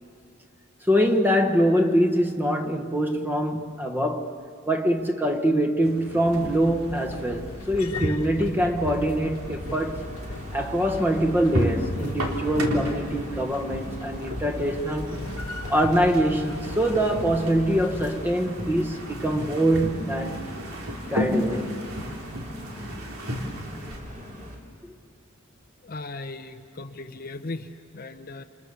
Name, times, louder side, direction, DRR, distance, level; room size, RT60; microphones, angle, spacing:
voice 1, 0.8-4.3 4.7-10.1 10.5-15.2 15.7-20.5 21.1-21.7, equal, 10° right, 1.4 m, -24 dB
sound 1, 5.8-24.0, equal, 75° right, 3.5 m, -34 dB
sound 2, 6.3-18.2, left 2 dB, 80° left, 1.3 m, -39 dB
sound 3, 9.2-24.6, equal, 35° right, 3.0 m, -42 dB
voice 2, 25.8-28.4, left 2 dB, 40° left, 0.8 m, -37 dB
29.5 x 29.0 x 7.0 m
head